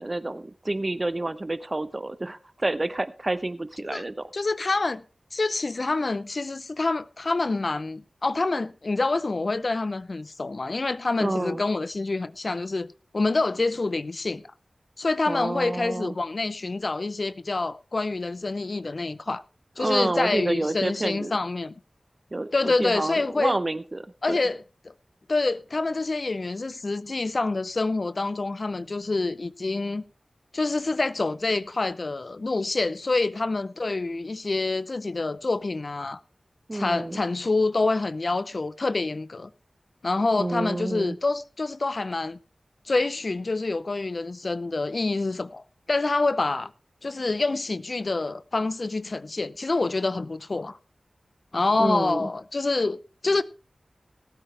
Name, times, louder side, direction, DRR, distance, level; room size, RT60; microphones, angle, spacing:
voice 1, 0.0-4.3 11.2-11.6 15.3-16.1 19.8-21.4 22.3-24.4 36.7-37.2 40.4-41.2 51.8-52.3, right 2 dB, 35° right, 0.9 m, -29 dB
voice 2, 4.3-5.0 5.3-12.9 13.1-14.4 15.0-19.4 19.8-21.7 22.5-23.6 24.2-24.9 25.3-30.0 30.5-36.2 36.7-39.5 40.0-42.4 42.9-46.7 47.0-50.8 51.5-53.4, left 3 dB, 55° left, 0.6 m, -27 dB
18.5 x 8.9 x 3.3 m
cardioid pair, 45°, 0 cm